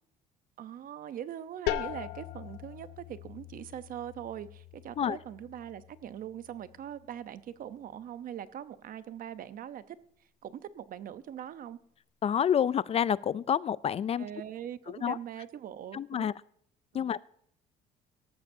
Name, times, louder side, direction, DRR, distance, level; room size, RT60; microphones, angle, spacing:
voice 1, 0.6-10.0 10.4-11.8 14.2-16.3 16.9-17.1, right 10 dB, 55° right, 0.8 m, -42 dB
sound 1, 1.7-7.2, left 13 dB, 90° left, 0.8 m, -40 dB
voice 2, 12.2-14.2 14.9-15.2 15.9-16.3 16.9-17.3, left 8 dB, 35° left, 0.4 m, -28 dB
18.5 x 13.5 x 2.7 m
cardioid pair, 110°, 17 cm